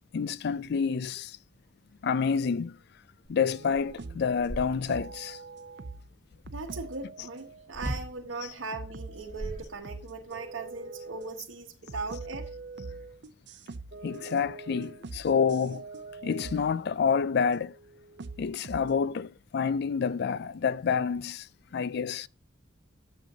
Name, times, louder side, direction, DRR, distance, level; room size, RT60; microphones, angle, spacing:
voice 1, 0.1-1.4 2.0-2.8 3.3-5.4 14.0-15.8 16.2-17.8 18.4-22.3, left 6 dB, 55° left, 0.4 m, -28 dB
sound 1, 3.2-3.3 3.7-5.2 7.7-8.2 9.0-10.2, equal, 15° left, 1.9 m, -39 dB
sound 2, 3.5-4.4 4.9-6.1 6.5-8.2 8.5-9.5 9.8-11.4 11.9-16.8 17.5-19.0, right 3 dB, 60° right, 0.6 m, -43 dB
voice 2, 6.5-12.5, right 3 dB, 85° right, 1.1 m, -39 dB
10.5 x 7.3 x 2.7 m
head